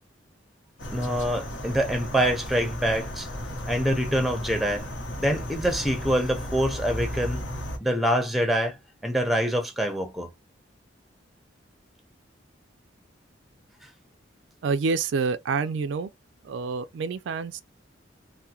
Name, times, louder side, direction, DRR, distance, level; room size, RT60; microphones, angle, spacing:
sound 1, 0.8-7.8, equal, 75° left, 0.9 m, -34 dB
voice 1, 0.9-3.3 3.7-4.8 5.2-7.4 7.8-8.8 9.0-10.3, equal, ahead, 0.6 m, -25 dB
voice 2, 14.6-16.1 16.5-17.6, right 4 dB, 70° right, 0.3 m, -27 dB
3.5 x 2.1 x 2.8 m
head